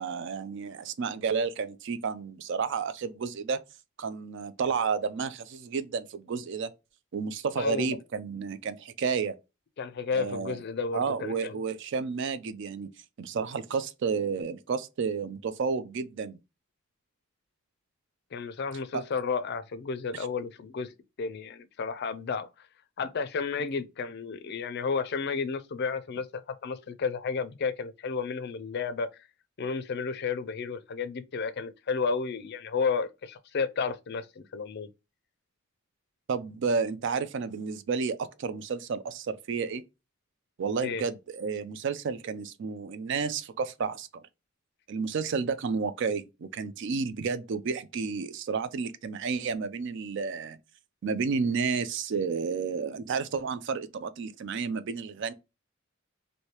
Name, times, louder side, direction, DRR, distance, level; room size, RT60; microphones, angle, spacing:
voice 1, 0.0-3.6 4.0-6.7 7.1-9.4 10.1-10.6 10.9-12.9 13.2-16.4 18.9-19.0 20.1-20.3 36.3-39.8 40.6-44.1 44.9-50.6 51.0-55.3, right 5 dB, 60° right, 0.4 m, -31 dB
voice 2, 7.6-8.0 9.8-11.6 18.3-22.7 23.0-29.1 29.6-34.9 40.8-41.0, left 5 dB, 55° left, 0.4 m, -32 dB
3.2 x 2.7 x 2.8 m
head